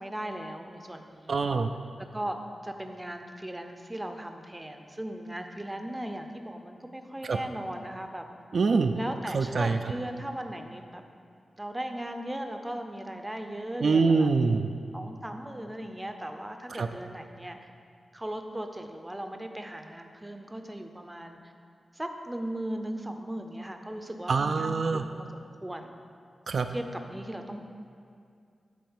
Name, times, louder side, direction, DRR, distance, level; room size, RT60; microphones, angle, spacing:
voice 1, 0.0-1.4 2.0-8.3 8.9-11.0 11.6-14.3 14.9-17.7 18.1-21.5 21.9-25.9 26.7-27.6, right 1 dB, 10° right, 5 dB, 0.6 m, -37 dB
voice 2, 1.3-1.7 7.2-7.4 8.5-8.9 9.3-9.8 13.8-14.7 16.8-16.9 24.3-25.0 26.5-26.7, right 4 dB, 60° right, 6 dB, 0.3 m, -24 dB
9.3 x 4.2 x 7.1 m, 2.4 s
wide cardioid pair, 135°, 0 cm